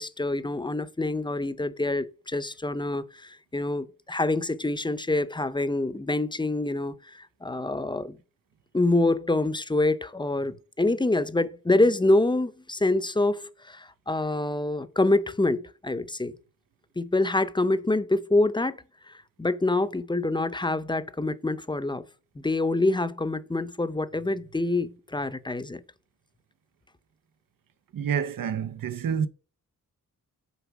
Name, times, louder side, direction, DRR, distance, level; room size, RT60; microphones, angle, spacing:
voice 1, 0.0-8.2 8.7-16.3 17.0-22.1 22.4-25.8, left 2 dB, 15° left, 0.7 m, -26 dB
voice 2, 27.9-29.3, right 7 dB, 75° right, 0.8 m, -28 dB
7.1 x 4.4 x 5.9 m
wide cardioid pair, 90°, 33 cm